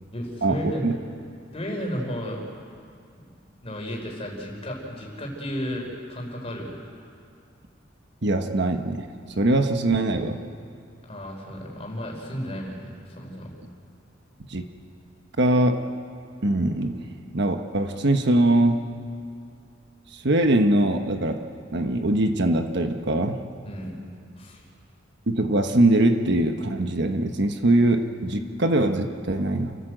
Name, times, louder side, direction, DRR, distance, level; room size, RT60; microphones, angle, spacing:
voice 1, 0.1-0.9 1.5-2.4 3.2-3.3 3.6-6.7 11.1-13.5 23.6-24.0 24.4-24.6, equal, 30° left, -1 dB, 4.7 m, -33 dB
voice 2, 8.2-9.1 9.4-10.4 14.5-14.7 15.4-15.9 16.4-17.0 17.3-18.8 20.1-21.4 21.7-23.4 25.3-29.8, right 1 dB, 60° right, 6 dB, 1.3 m, -22 dB
29.0 x 14.5 x 8.0 m, 2.4 s
head